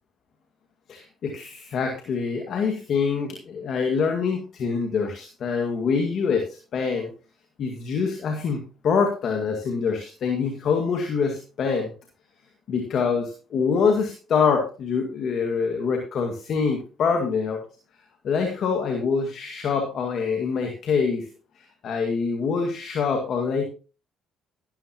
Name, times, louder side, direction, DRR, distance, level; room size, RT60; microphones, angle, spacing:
voice 1, 0.9-7.1 7.6-11.9 12.7-17.6 18.2-21.3 21.6-23.6, left 5 dB, 60° left, 4 dB, 2.1 m, -25 dB
12.5 x 12.0 x 3.0 m, 0.35 s
supercardioid pair, 70°, 0 cm